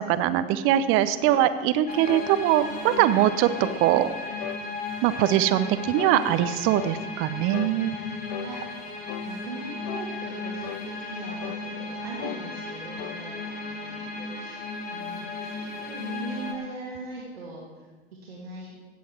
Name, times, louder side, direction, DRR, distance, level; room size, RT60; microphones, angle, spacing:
voice 1, 0.0-3.5 3.8-4.1 5.0-8.0, right 12 dB, 45° right, 13 dB, 0.7 m, -22 dB
sound 1, 1.3-1.5 2.1-2.3 2.8-3.1 3.6-3.9 4.4-4.6 5.2-5.4 6.0-6.2 6.7-7.0 7.5-7.8 8.3-8.5 9.1-9.3 9.9-10.1 10.6-10.9 11.4-11.7 12.2-12.4 13.0-13.2, left 13 dB, 55° left, 0.7 m, -37 dB
sound 2, 1.9-16.5, left 3 dB, 30° left, 1.6 m, -35 dB
voice 2, 9.2-14.6 14.9-17.9 18.2-18.8, right 2 dB, 80° right, -5 dB, 2.1 m, -40 dB
14.5 x 8.4 x 4.6 m, 1.3 s
figure-of-eight pair, 85°, 31 cm